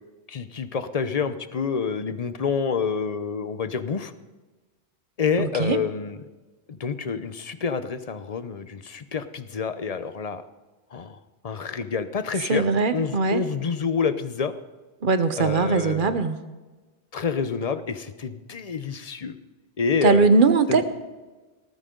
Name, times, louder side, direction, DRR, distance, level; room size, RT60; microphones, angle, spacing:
voice 1, 0.3-4.1 5.2-6.2 6.7-10.4 10.9-11.2 11.4-12.6 12.9-14.5 15.4-16.2 17.1-19.4 19.8-20.3 20.7-20.8, left 5 dB, 40° left, 12 dB, 0.7 m, -28 dB
voice 2, 5.4-5.8 12.5-13.4 15.0-16.4 20.0-20.9, right 4 dB, 50° right, 11 dB, 1.0 m, -20 dB
18.5 x 13.5 x 3.8 m, 1.2 s
omnidirectional pair, 1.1 m